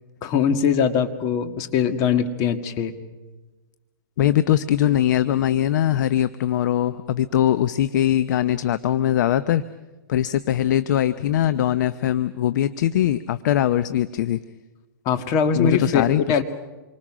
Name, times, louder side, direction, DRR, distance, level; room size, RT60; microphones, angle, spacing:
voice 1, 0.2-2.9 15.1-16.4, left 7 dB, 35° left, 7 dB, 1.8 m, -21 dB
voice 2, 4.2-9.6 10.1-14.4 15.5-16.4, left 11 dB, 55° left, 13 dB, 0.8 m, -21 dB
27.5 x 24.0 x 6.2 m, 1.2 s
hypercardioid pair, 140°, 12 cm